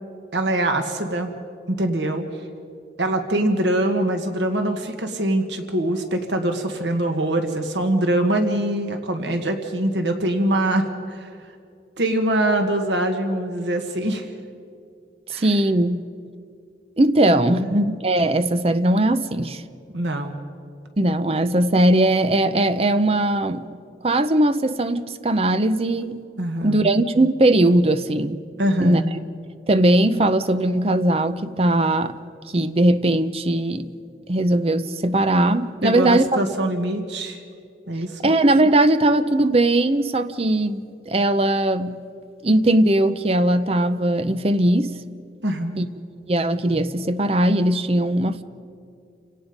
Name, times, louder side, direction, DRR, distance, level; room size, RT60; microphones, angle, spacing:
voice 1, 0.3-1.3 1.7-2.3 3.0-11.3 12.0-14.3 15.3-15.5 17.6-17.9 19.9-20.3 26.4-26.9 28.6-29.1 35.8-37.4 37.9-38.2 45.4-45.8, right 1 dB, 85° right, 1.7 m, -23 dB
voice 2, 15.3-16.0 17.0-19.6 21.0-23.6 24.0-26.2 26.6-28.4 28.8-29.0 29.7-32.2 32.5-33.9 34.3-36.2 38.2-42.0 42.4-44.9 45.8-45.9 46.3-48.4, right 1 dB, 35° right, 0.7 m, -19 dB
29.0 x 17.5 x 5.3 m
head